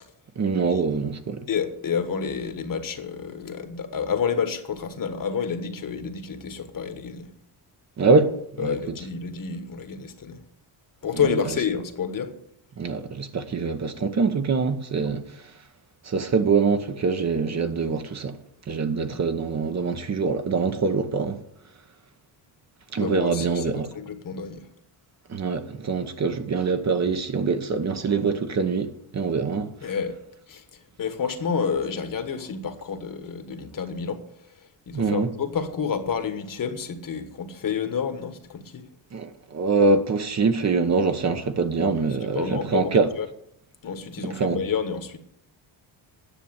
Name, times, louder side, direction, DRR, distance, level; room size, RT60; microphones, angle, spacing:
voice 1, 0.4-1.5 8.0-8.3 8.6-8.7 12.8-15.2 16.0-18.3 18.7-21.4 22.9-23.9 25.3-29.7 34.9-35.3 39.1-43.1 44.4-44.6, right 4 dB, 35° right, 1.0 m, -24 dB
voice 2, 1.5-7.3 8.6-10.4 11.0-12.4 15.0-15.1 23.0-24.7 29.8-30.2 30.5-34.5 34.9-38.9 42.2-43.3 43.8-45.2, left 6 dB, 45° left, 1.4 m, -29 dB
10.0 x 6.9 x 8.8 m
cardioid pair, 120°, 46 cm